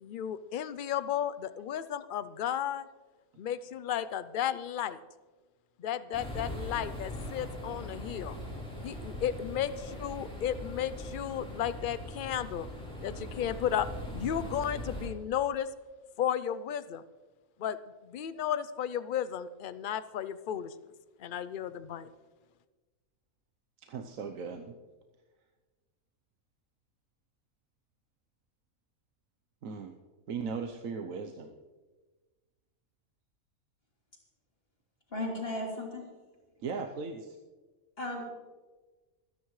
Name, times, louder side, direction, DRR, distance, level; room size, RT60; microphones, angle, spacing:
voice 1, 0.0-2.9 3.4-5.0 5.8-8.4 8.8-12.7 13.0-13.9 14.1-15.7 16.2-17.0 17.6-17.8 18.0-20.7 21.2-22.1, left 9 dB, 80° left, 14 dB, 0.4 m, -34 dB
sound 1, 6.1-15.1, left 1 dB, 5° left, 3.9 m, -41 dB
voice 2, 23.8-24.8 29.6-29.9 30.3-31.5 36.6-37.4, right 5 dB, 70° right, 5 dB, 1.2 m, -38 dB
voice 3, 35.1-36.1 38.0-38.3, left 1 dB, 40° left, -3 dB, 3.6 m, -35 dB
25.5 x 10.0 x 3.2 m, 1.3 s
omnidirectional pair, 1.5 m